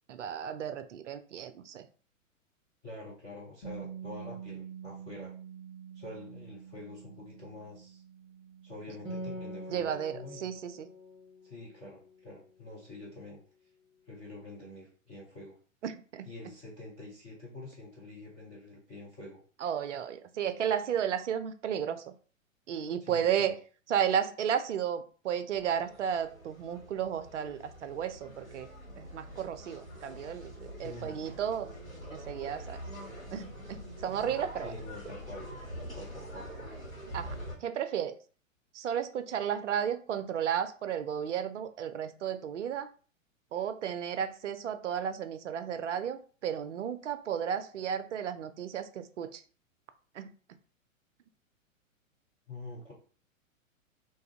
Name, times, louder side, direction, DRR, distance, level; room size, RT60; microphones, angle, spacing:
voice 1, 0.1-1.9 9.7-10.9 15.8-16.3 19.6-22.0 22.7-23.6 23.9-28.7 29.0-30.5 30.8-31.7 32.1-32.8 33.3-34.7 37.1-37.4 37.6-38.2 38.7-42.9 43.5-49.4 50.2-50.3, right 8 dB, 60° right, 10 dB, 0.5 m, -33 dB
voice 2, 2.8-5.3 5.9-8.0 8.6-10.5 11.4-13.4 14.1-15.5 16.3-19.4 23.0-23.5 30.8-31.2 34.6-35.5 35.8-36.5 52.5-52.9, left 2 dB, 10° left, -10 dB, 0.4 m, -46 dB
Bass guitar, 3.6-9.9, right 8 dB, 35° left, 0.9 m, -47 dB
Acoustic guitar, 9.0-12.8, equal, 15° right, 0.8 m, -44 dB
sound 1, 25.5-37.6, equal, 85° left, 1.6 m, -45 dB
2.7 x 2.3 x 3.6 m, 0.40 s
figure-of-eight pair, 105°, 40 cm